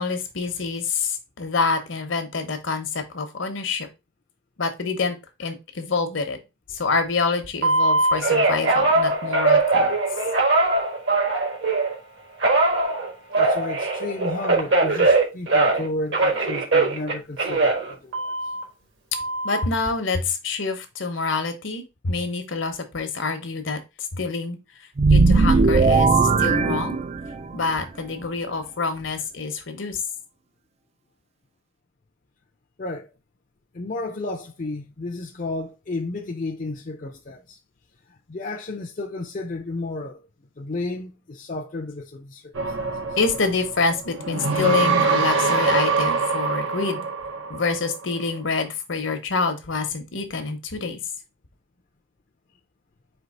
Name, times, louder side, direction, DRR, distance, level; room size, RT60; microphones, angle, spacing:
voice 1, 0.0-3.9 4.6-6.4 6.7-9.9 19.4-23.8 24.1-24.6 25.1-27.0 27.5-30.0 43.2-47.1 47.5-51.0, left 4 dB, 70° left, 0.9 m, -26 dB
Telephone, 7.6-11.9 12.4-18.6 19.1-19.6, right 3 dB, 60° right, 1.4 m, -21 dB
voice 2, 13.3-18.3 32.8-33.1 33.7-37.6 38.3-40.2 40.6-43.2, left 2 dB, 40° left, 0.5 m, -32 dB
sound 1, 25.0-27.5, right 4 dB, 30° right, 0.3 m, -18 dB
sound 2, 42.5-48.2, right 4 dB, 85° right, 1.0 m, -24 dB
4.5 x 2.9 x 4.0 m
head